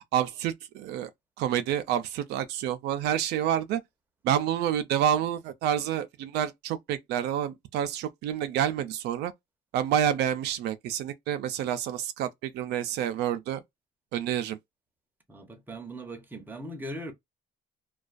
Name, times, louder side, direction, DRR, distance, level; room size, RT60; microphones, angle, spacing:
voice 1, 0.1-1.1 1.4-3.8 4.2-9.3 9.7-13.6 14.1-14.6, right 10 dB, 80° right, 0.4 m, -28 dB
voice 2, 15.3-17.1, right 1 dB, 10° right, 0.7 m, -39 dB
2.3 x 2.2 x 2.4 m
cardioid pair, 110°, 17 cm